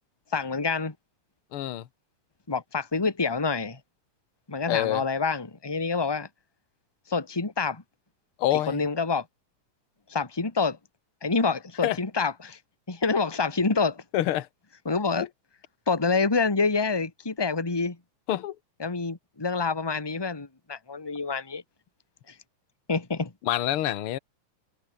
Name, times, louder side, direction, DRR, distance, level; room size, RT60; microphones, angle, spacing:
voice 1, 0.3-0.9 2.5-3.8 4.5-6.3 7.1-7.8 8.7-9.3 10.1-10.8 11.2-12.6 12.9-14.0 14.9-15.3 15.9-18.0 18.8-21.6 22.3-22.4 22.9-23.3, left 4 dB, 10° left, 1.8 m, -27 dB
voice 2, 1.5-1.9 4.7-5.0 8.4-8.9 11.8-12.0 14.1-14.5 18.3-18.6 23.4-24.2, left 13 dB, 60° left, 1.8 m, -26 dB
omnidirectional pair, 3.3 m